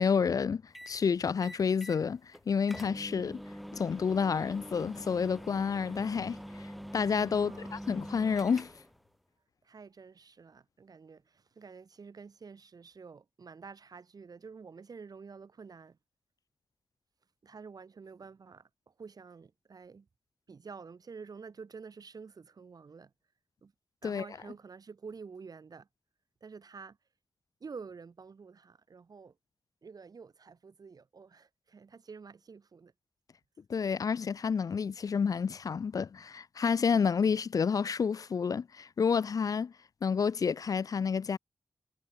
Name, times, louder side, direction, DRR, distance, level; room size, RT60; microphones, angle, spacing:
voice 1, 0.0-3.4 3.7-8.7 24.0-24.2 33.7-39.7 40.0-41.4, left 6 dB, 55° left, 0.4 m, -29 dB
sound 1, 0.7-1.0 1.4-2.0 2.3-2.4 2.7-9.0, equal, ahead, 0.9 m, -44 dB
voice 2, 7.3-7.8 9.6-16.0 17.4-20.1 20.5-23.1 23.6-23.7 24.0-25.9 26.4-27.0 27.6-29.4 29.8-32.9, right 5 dB, 60° right, 6.3 m, -49 dB
wide cardioid pair, 130°, 7 cm